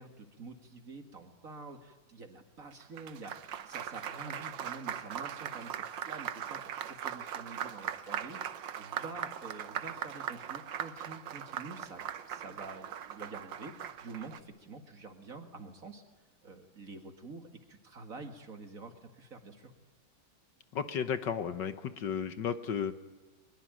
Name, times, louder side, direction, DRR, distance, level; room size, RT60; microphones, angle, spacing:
voice 1, 0.0-8.4 8.8-16.0 16.4-19.7, right 3 dB, 40° right, 6 dB, 2.4 m, -47 dB
Applause, 2.7-14.4, right 9 dB, 70° right, 1.7 m, -40 dB
voice 2, 20.7-22.9, left 7 dB, 65° left, 11 dB, 1.7 m, -33 dB
23.0 x 21.5 x 9.2 m, 1.2 s
omnidirectional pair, 2.2 m